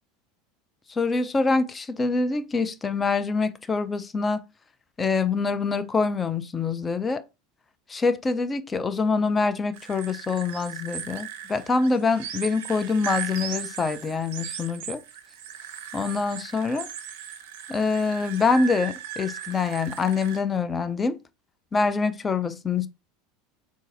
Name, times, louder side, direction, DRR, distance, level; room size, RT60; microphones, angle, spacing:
voice 1, 0.9-4.4 5.0-7.2 7.9-15.0 15.9-16.9 17.7-21.2 21.7-22.9, left 4 dB, 20° left, 0.4 m, -25 dB
sound 1, 9.7-20.4, right 9 dB, 65° right, 0.5 m, -37 dB
3.8 x 2.4 x 2.5 m
figure-of-eight pair, 75°, 0 cm